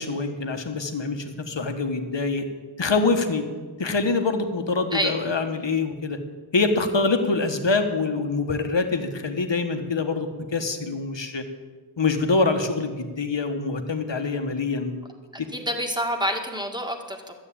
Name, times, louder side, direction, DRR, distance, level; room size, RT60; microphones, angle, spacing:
voice 1, 0.0-2.5 2.8-3.4 3.8-6.2 6.5-11.4 12.0-14.9 15.4-15.5, left 3 dB, 75° left, 6 dB, 1.4 m, -25 dB
voice 2, 15.5-17.3, equal, 10° right, 2 dB, 2.0 m, -27 dB
12.5 x 8.4 x 8.5 m, 1.4 s
wide cardioid pair, 50°, 44 cm